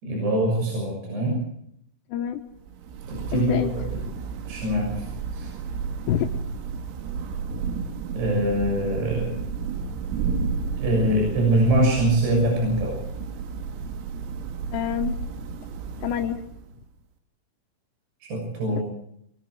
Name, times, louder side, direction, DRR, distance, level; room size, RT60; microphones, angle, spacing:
voice 1, 0.0-1.4 3.1-3.7 4.5-5.1 5.3-5.5 8.1-9.4 10.8-12.9 18.2-18.8, right 1 dB, 55° right, -1 dB, 8.7 m, -23 dB
voice 2, 2.1-2.4 3.3-3.7 6.1-6.3 14.7-15.2 16.0-16.4, left 10 dB, 70° left, 2 dB, 2.9 m, -26 dB
Thunder / Rain, 2.5-16.9, right 5 dB, 90° right, 4.5 m, -32 dB
25.0 x 22.5 x 4.9 m, 0.72 s
omnidirectional pair, 5.9 m